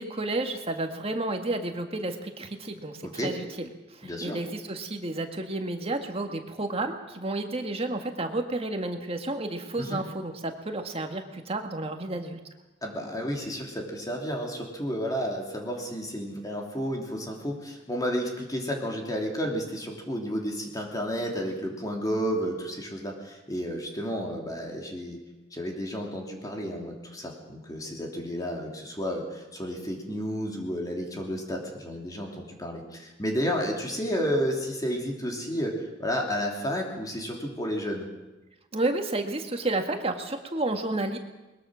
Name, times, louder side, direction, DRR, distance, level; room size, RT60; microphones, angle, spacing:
voice 1, 0.0-12.4 38.7-41.2, right 2 dB, 30° right, 5 dB, 1.8 m, -31 dB
voice 2, 3.0-3.3 4.0-4.4 9.8-10.0 12.8-25.2 25.5-38.1, equal, 20° left, 0 dB, 3.0 m, -31 dB
21.5 x 21.0 x 6.4 m, 1.1 s
head